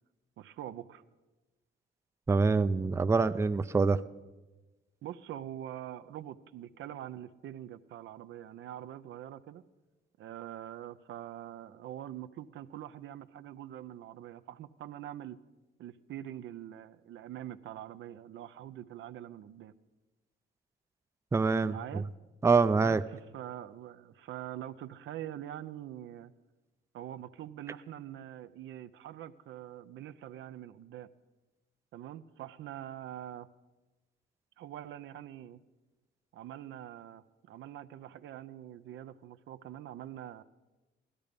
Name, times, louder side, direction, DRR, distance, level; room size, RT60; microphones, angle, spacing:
voice 1, 0.4-1.0 5.0-9.6 10.2-15.4 15.8-19.7 21.6-22.1 22.8-26.3 26.9-31.1 31.9-33.5 34.6-35.6 36.3-40.4, right 11 dB, 75° right, 12 dB, 0.6 m, -44 dB
voice 2, 2.3-4.0 21.3-22.0 22.4-23.0, right 4 dB, 15° right, 12 dB, 0.4 m, -25 dB
16.5 x 12.5 x 5.2 m, 1.2 s
cardioid pair, 90°, 20 cm